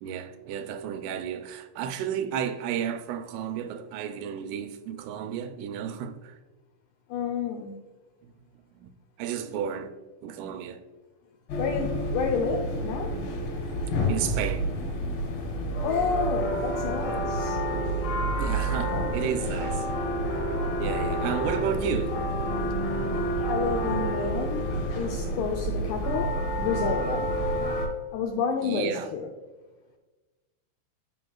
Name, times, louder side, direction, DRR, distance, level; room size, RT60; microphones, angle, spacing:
voice 1, 0.0-6.4 8.2-8.3 8.7-8.9 9.2-9.9 10.2-10.8 13.0-13.3 14.1-14.7 18.4-19.9 20.8-22.1 28.6-29.1, right 9 dB, 85° right, 3.0 m, -32 dB
voice 2, 7.1-7.8 11.6-13.1 15.8-17.6 23.5-24.7 24.9-26.3 26.6-27.3 28.1-29.3, left 5 dB, 85° left, 2.4 m, -29 dB
sound 1, 11.5-27.9, equal, 60° left, 3.6 m, -29 dB
15.5 x 5.3 x 2.3 m
omnidirectional pair, 5.6 m